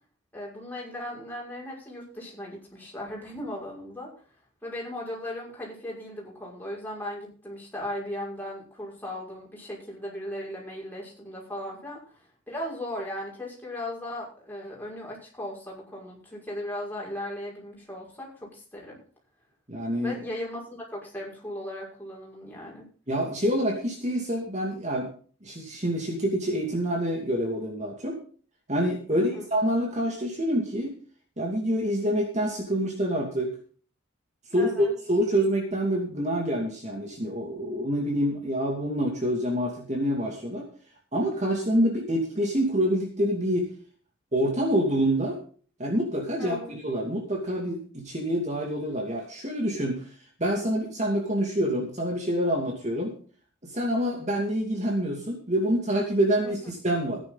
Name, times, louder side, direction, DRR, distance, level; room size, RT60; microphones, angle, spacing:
voice 1, 0.3-4.1 4.6-12.2 12.5-19.0 20.0-22.9 29.1-29.5 34.5-34.9 46.4-46.7 56.4-56.7, left 1 dB, 10° left, -4 dB, 5.9 m, -37 dB
voice 2, 19.7-20.1 23.1-25.1 25.4-28.2 28.7-30.9 31.4-33.5 34.5-40.7 41.1-43.6 44.3-45.4 45.8-50.0 50.4-53.1 53.6-57.2, equal, 35° right, 1 dB, 2.5 m, -26 dB
14.5 x 10.5 x 4.0 m, 0.41 s
head